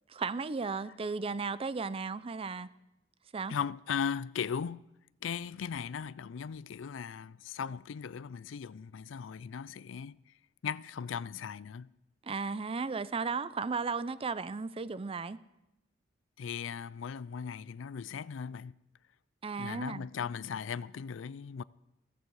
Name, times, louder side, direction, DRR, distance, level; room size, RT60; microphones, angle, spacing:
voice 1, 0.1-2.7 3.3-3.5 12.2-15.4 19.4-20.0, right 4 dB, 30° right, 0.5 m, -35 dB
voice 2, 3.5-4.9 5.2-10.2 10.6-11.9 16.4-18.7 19.6-21.6, left 7 dB, 90° left, 0.4 m, -38 dB
15.5 x 14.0 x 4.8 m
head